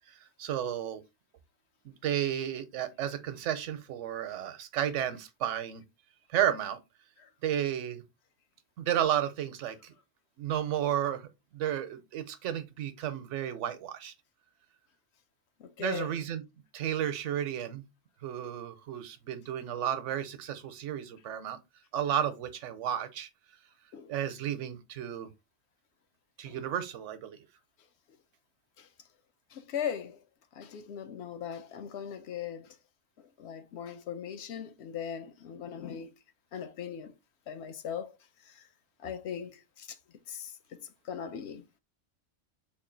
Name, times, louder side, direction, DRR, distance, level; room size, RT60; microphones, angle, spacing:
voice 1, 0.1-1.0 1.8-5.8 6.3-6.8 7.4-8.0 8.8-9.9 10.4-14.1 15.8-16.4 16.7-17.9 18.2-21.6 21.9-23.3 24.1-25.3 26.4-27.4, right 10 dB, 85° right, 1.0 m, -32 dB
voice 2, 15.6-16.2 23.9-24.1 26.4-26.6 28.8-28.9 29.5-30.2 30.5-32.8 33.2-36.1 36.5-37.1 37.5-38.1 38.5-38.6 39.0-40.0 40.3-41.8, left 8 dB, 70° left, 0.8 m, -39 dB
3.6 x 2.4 x 3.8 m
omnidirectional pair, 1.2 m